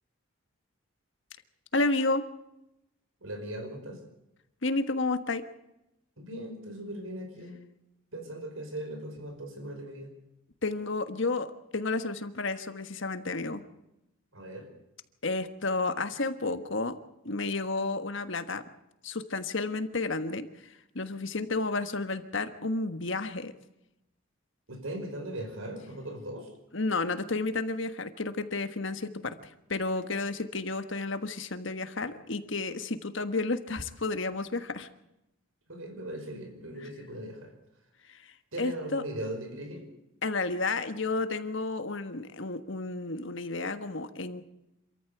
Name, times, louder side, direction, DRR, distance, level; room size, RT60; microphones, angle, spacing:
voice 1, 1.7-2.2 4.6-5.4 10.6-13.6 15.2-16.9 17.2-18.6 19.0-23.5 26.7-34.9 38.1-38.3 38.6-39.0 40.2-44.4, left 3 dB, 65° left, 10 dB, 1.4 m, -31 dB
voice 2, 3.2-4.0 6.2-7.6 8.1-10.1 14.3-14.7 24.7-26.5 35.7-37.5 38.5-39.9, right 1 dB, 75° right, 5 dB, 5.2 m, -39 dB
27.0 x 14.0 x 8.0 m, 0.89 s
head